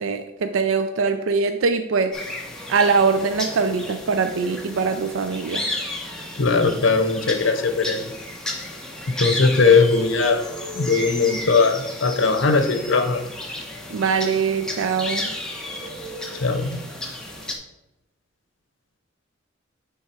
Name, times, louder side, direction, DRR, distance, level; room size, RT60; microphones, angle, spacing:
voice 1, 0.0-2.1 2.7-5.7 9.6-9.8 13.9-15.3, right 5 dB, 85° right, 8 dB, 0.4 m, -22 dB
sound 1, 2.1-17.5, left 1 dB, 5° left, 0.9 m, -33 dB
voice 2, 6.4-8.1 9.2-10.4 10.8-13.2 16.4-16.8, left 4 dB, 70° left, 8 dB, 0.7 m, -19 dB
9.3 x 3.5 x 4.4 m, 0.95 s
head